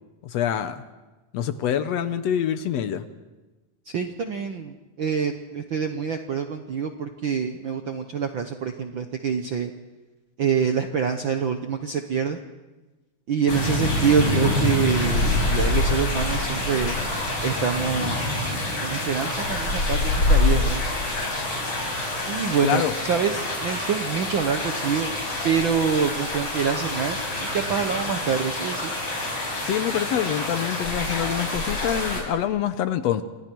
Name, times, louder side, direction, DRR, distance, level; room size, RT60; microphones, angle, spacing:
voice 1, 0.2-0.8 1.3-3.0 22.6-23.0 29.6-33.2, left 10 dB, 70° left, 11 dB, 1.8 m, -25 dB
voice 2, 3.9-9.7 10.4-12.4 13.3-17.0 17.4-18.4 18.8-20.8 22.3-25.1 25.4-28.9, right 7 dB, 65° right, 6 dB, 1.2 m, -26 dB
sound 1, 13.5-32.2, left 2 dB, 40° left, 6.5 m, -26 dB
29.0 x 25.5 x 4.6 m, 1.2 s
omnidirectional pair, 3.5 m